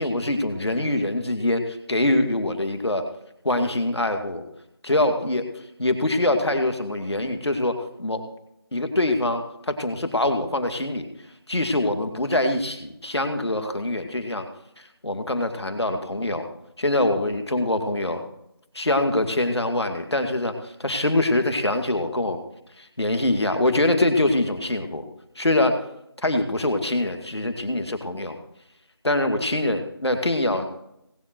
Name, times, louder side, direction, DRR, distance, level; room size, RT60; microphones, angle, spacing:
voice 1, 0.0-3.0 3.4-4.4 4.8-5.4 5.8-8.2 8.7-11.0 11.5-14.4 14.8-16.4 16.8-18.2 18.7-22.4 22.8-25.0 25.3-25.8 26.2-28.4 29.0-30.6, left 1 dB, ahead, -24 dB, 0.8 m, -24 dB
17.0 x 7.7 x 4.5 m, 0.79 s
figure-of-eight pair, 175°, 14 cm